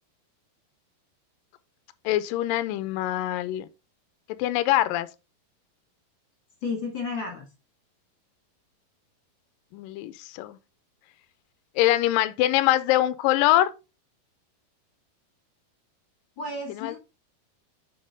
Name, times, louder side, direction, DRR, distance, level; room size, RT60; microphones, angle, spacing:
voice 1, 2.1-3.7 4.4-5.1 9.7-10.6 11.8-13.7 16.7-17.0, left 14 dB, 80° left, 2.2 m, -23 dB
voice 2, 6.6-7.4 16.4-17.0, left 3 dB, 40° left, 2.0 m, -32 dB
7.7 x 5.9 x 3.6 m
omnidirectional pair, 4.5 m